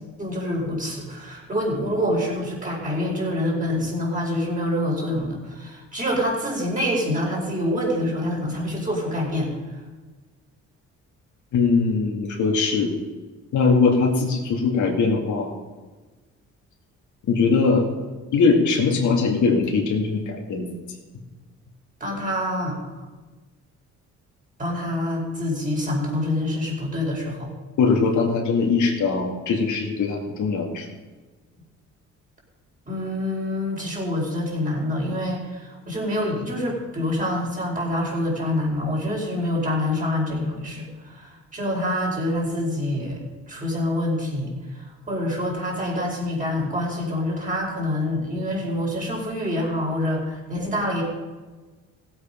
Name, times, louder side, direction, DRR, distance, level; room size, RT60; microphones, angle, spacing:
voice 1, 0.2-9.5 22.0-22.8 24.6-27.5 32.9-51.0, left 1 dB, 25° right, -3 dB, 5.0 m, -26 dB
voice 2, 11.5-12.9 13.5-15.6 17.3-17.9 18.3-20.6 27.8-30.9, left 4 dB, 75° left, 0 dB, 2.4 m, -21 dB
16.5 x 8.3 x 5.3 m, 1.3 s
cardioid pair, 90°, 30 cm